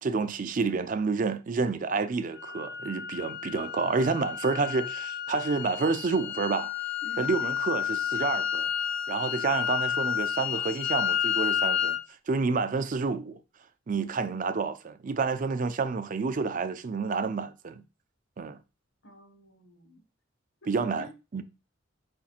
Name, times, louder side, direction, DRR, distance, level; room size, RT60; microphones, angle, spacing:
voice 1, 0.0-6.7 7.2-8.7 9.1-12.0 12.3-13.4 13.9-17.8 18.4-18.6 20.7-21.4, right 4 dB, 40° right, 0.4 m, -29 dB
sound 1, 2.4-12.0, left 9 dB, 60° left, 0.5 m, -31 dB
voice 2, 7.0-7.3 13.9-14.7 19.0-20.0 20.6-21.1, left 1 dB, 85° left, 1.6 m, -51 dB
5.1 x 4.2 x 2.4 m
head